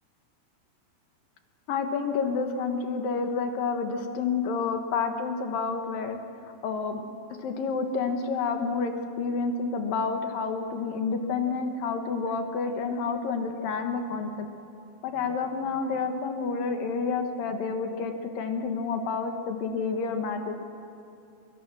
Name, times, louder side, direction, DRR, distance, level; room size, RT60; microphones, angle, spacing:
voice 1, 1.7-7.0 7.4-14.5 15.0-20.6, left 4 dB, 70° left, 5 dB, 3.0 m, -29 dB
24.5 x 23.0 x 6.2 m, 2.7 s
omnidirectional pair, 4.4 m